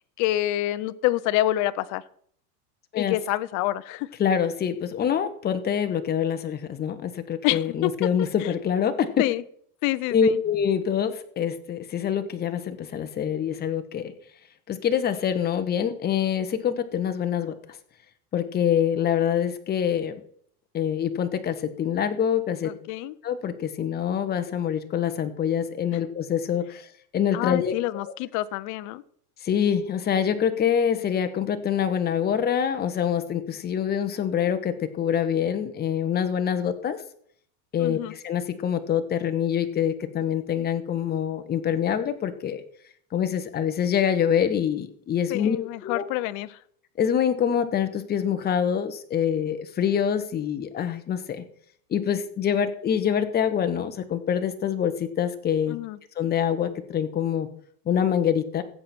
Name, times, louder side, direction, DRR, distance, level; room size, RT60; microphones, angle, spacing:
voice 1, 0.2-2.0 2.9-4.1 7.4-7.9 8.2-8.5 9.2-9.4 9.8-10.4 22.6-23.2 27.3-29.0 37.8-38.1 45.3-46.6 55.7-56.0, left 15 dB, 40° left, 15 dB, 0.6 m, -27 dB
voice 2, 4.2-9.1 10.1-14.1 14.7-17.5 18.3-20.2 20.7-22.7 23.2-26.9 27.1-27.7 29.4-37.0 37.7-42.6 43.1-46.0 47.0-51.4 51.9-55.8 56.2-57.5 57.9-58.6, left 8 dB, 20° left, 9 dB, 1.1 m, -25 dB
15.5 x 7.7 x 4.4 m, 0.62 s
supercardioid pair, 135°, 46 cm